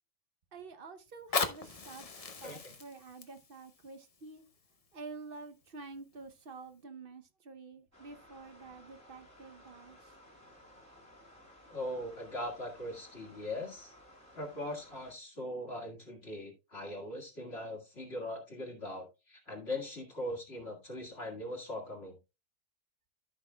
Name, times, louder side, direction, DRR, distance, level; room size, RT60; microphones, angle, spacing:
voice 1, 0.5-4.4 4.9-10.1, right 4 dB, 45° right, 0.9 m, -49 dB
Fire, 1.1-6.0 6.7-6.8, left 4 dB, 30° left, 0.8 m, -39 dB
voice 2, 2.4-2.7 11.7-13.9 14.3-22.2, left 1 dB, 45° left, 2.0 m, -40 dB
sound 1, 7.9-15.1, left 1 dB, 10° right, 2.2 m, -57 dB
14.0 x 6.0 x 2.2 m
omnidirectional pair, 1.5 m